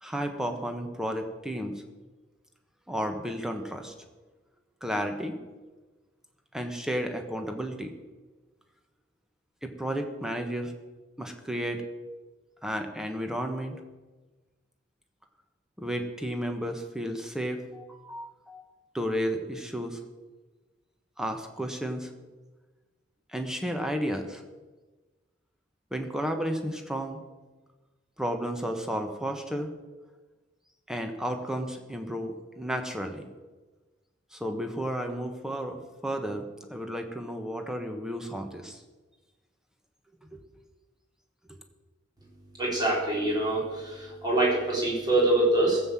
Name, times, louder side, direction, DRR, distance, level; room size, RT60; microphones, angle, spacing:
voice 1, 0.0-1.8 2.9-3.9 4.8-5.4 6.5-8.0 9.6-10.7 11.2-11.8 12.6-13.8 15.8-18.7 18.9-20.0 21.2-22.1 23.3-24.4 25.9-27.2 28.2-29.7 30.9-33.3 34.3-38.8 40.3-40.4, equal, 5° right, 4 dB, 1.3 m, -32 dB
voice 2, 42.6-45.8, right 2 dB, 20° right, -4 dB, 4.1 m, -25 dB
15.0 x 7.7 x 7.3 m, 1.3 s
head